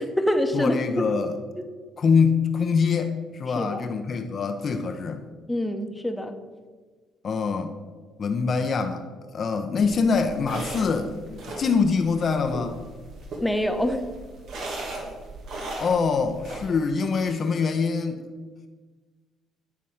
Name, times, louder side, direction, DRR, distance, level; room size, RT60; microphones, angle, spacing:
voice 1, 0.0-1.0 3.6-3.9 5.5-6.3 13.4-14.1, left 1 dB, 5° left, 6 dB, 1.1 m, -25 dB
voice 2, 0.5-1.3 2.0-5.2 7.2-7.7 8.2-9.0 9.3-12.8 15.8-18.3, left 5 dB, 50° left, 7 dB, 0.8 m, -24 dB
sound 1, 9.8-16.7, right 2 dB, 65° right, 1.7 m, -38 dB
9.5 x 4.1 x 6.3 m, 1.4 s
hypercardioid pair, 55°, 0 cm